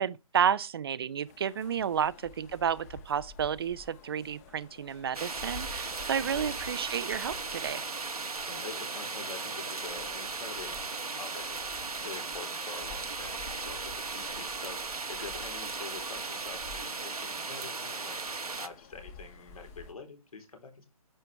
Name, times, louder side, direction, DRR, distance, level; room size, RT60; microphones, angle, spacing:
voice 1, 0.0-7.8, right 8 dB, 40° right, 0.5 m, -31 dB
sound 1, 1.3-19.9, left 4 dB, 25° left, 1.2 m, -51 dB
sound 2, 5.1-18.7, right 4 dB, 85° right, 1.3 m, -37 dB
voice 2, 8.5-20.9, left 4 dB, 75° left, 4.0 m, -46 dB
10.5 x 7.7 x 3.4 m
figure-of-eight pair, 145°, 19 cm